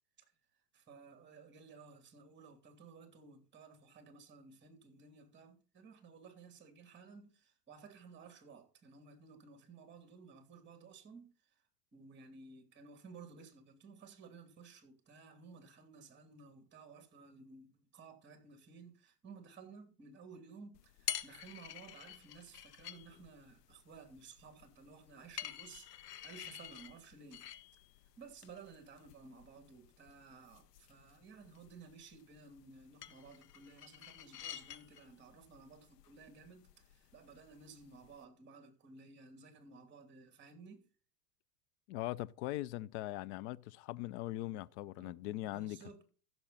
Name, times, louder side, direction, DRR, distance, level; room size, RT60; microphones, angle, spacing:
voice 1, 0.7-11.6 11.9-27.5 28.2-40.9 45.0-46.0, right 4 dB, 20° right, 2.8 m, -56 dB
sound 1, 20.7-38.2, left 11 dB, 80° left, 1.1 m, -50 dB
voice 2, 41.9-45.8, left 16 dB, 45° left, 0.6 m, -40 dB
15.0 x 6.5 x 4.1 m
hypercardioid pair, 120°, 48 cm